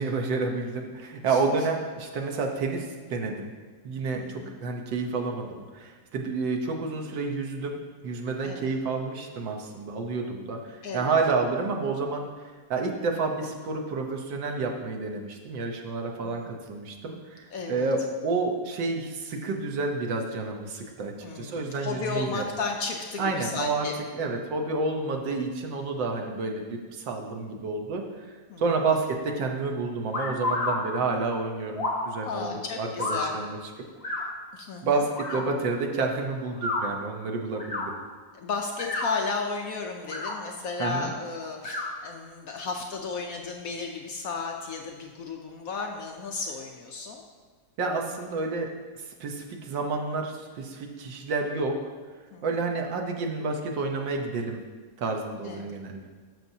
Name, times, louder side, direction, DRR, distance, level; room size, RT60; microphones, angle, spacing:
voice 1, 0.0-3.5 3.8-12.3 12.7-22.4 23.2-23.9 24.1-33.6 34.1-34.2 34.8-37.9 40.8-41.1 47.8-48.7 49.1-51.8 52.4-54.6 55.0-56.1, right 3 dB, 85° right, 2 dB, 1.6 m, -30 dB
voice 2, 4.1-4.5 8.4-8.7 10.8-11.1 16.2-16.5 17.5-17.9 21.2-24.0 28.5-28.6 32.3-33.4 34.5-35.4 38.3-47.2 52.3-52.4 55.4-55.7, left 4 dB, 65° left, 2 dB, 0.9 m, -34 dB
sound 1, 30.1-30.8 31.7-32.1 33.0-33.3 34.0-34.2 35.1-35.4 36.5-36.8 37.5-37.8 38.7-39.1 40.0-40.3 41.6-41.9, left 2 dB, 35° left, 1.7 m, -30 dB
12.5 x 6.1 x 2.7 m, 1.4 s
omnidirectional pair, 2.0 m